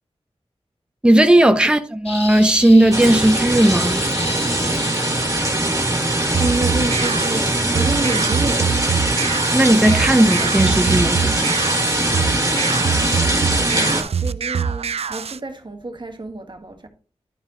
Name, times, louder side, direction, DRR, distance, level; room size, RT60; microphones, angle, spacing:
voice 1, 1.0-4.0 9.5-11.5, right 1 dB, 10° right, 0.8 m, -15 dB
sound 1, 2.1-5.7, left 2 dB, 70° left, 4.6 m, -32 dB
sound 2, 2.9-14.0, right 1 dB, 30° right, 2.3 m, -21 dB
sound 3, 6.3-15.4, right 6 dB, 65° right, 0.4 m, -24 dB
voice 2, 6.4-8.7 13.6-16.9, right 2 dB, 45° right, 1.6 m, -28 dB
11.0 x 4.4 x 3.9 m
cardioid pair, 45°, 11 cm